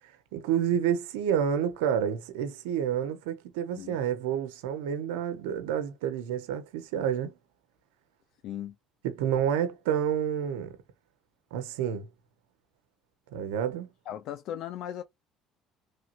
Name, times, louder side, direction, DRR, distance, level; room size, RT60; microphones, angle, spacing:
voice 1, 0.3-7.3 9.0-10.8 11.5-12.1 13.3-13.9, right 9 dB, 90° right, 0.6 m, -29 dB
voice 2, 8.4-8.7 14.1-15.0, left 11 dB, 70° left, 0.4 m, -37 dB
3.1 x 2.8 x 2.4 m
supercardioid pair, 85°, 0 cm